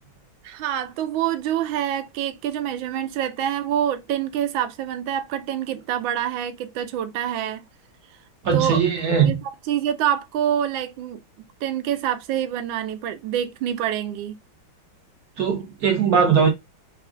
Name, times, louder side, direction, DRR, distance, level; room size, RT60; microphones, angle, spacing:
voice 1, 0.4-7.6 8.5-8.8 9.2-11.2 11.6-14.4, right 10 dB, 75° right, 1.3 m, -26 dB
voice 2, 8.4-9.4 15.4-16.5, right 6 dB, 55° right, 1.2 m, -19 dB
4.9 x 2.3 x 2.3 m
omnidirectional pair, 2.2 m